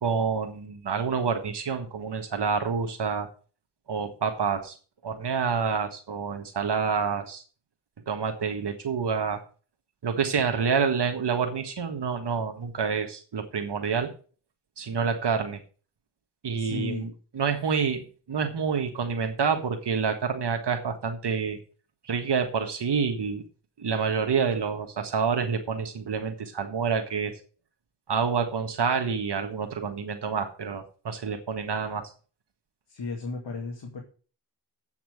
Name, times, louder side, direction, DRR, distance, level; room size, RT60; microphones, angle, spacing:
voice 1, 0.0-3.3 3.9-4.7 5.0-7.4 8.1-9.4 10.0-14.1 14.8-15.6 16.4-17.1 17.3-21.6 22.0-23.4 23.8-27.3 28.1-32.0, right 6 dB, 70° right, 5 dB, 1.6 m, -28 dB
voice 2, 16.6-17.1 32.9-34.0, left 3 dB, 80° left, 0 dB, 2.2 m, -34 dB
8.4 x 5.9 x 7.8 m, 0.39 s
cardioid pair, 40°, 42 cm